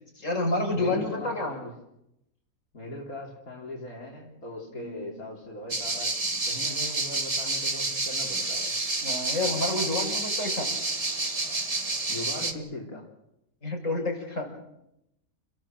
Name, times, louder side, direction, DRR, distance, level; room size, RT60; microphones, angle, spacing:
voice 1, 0.1-1.5 4.8-5.0 9.0-10.7 13.6-14.5, left 2 dB, 60° left, 1 dB, 5.9 m, -29 dB
voice 2, 0.7-1.7 2.7-6.1 6.4-8.7 12.1-13.1, left 1 dB, 80° left, -3 dB, 4.0 m, -39 dB
sound 1, 5.7-12.5, right 2 dB, 25° right, 1.7 m, -29 dB
30.0 x 16.5 x 7.6 m, 0.84 s
omnidirectional pair, 1.5 m